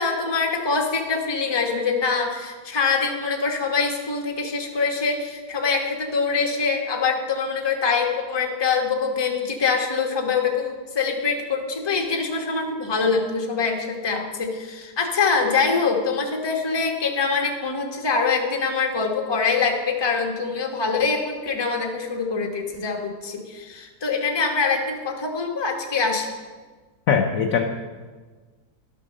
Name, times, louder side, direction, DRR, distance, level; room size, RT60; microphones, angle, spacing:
voice 1, 0.0-26.3, left 4 dB, 20° left, 1 dB, 0.9 m, -24 dB
voice 2, 27.1-27.6, left 6 dB, 65° left, 4 dB, 0.9 m, -20 dB
12.5 x 6.6 x 6.3 m, 1.4 s
omnidirectional pair, 2.1 m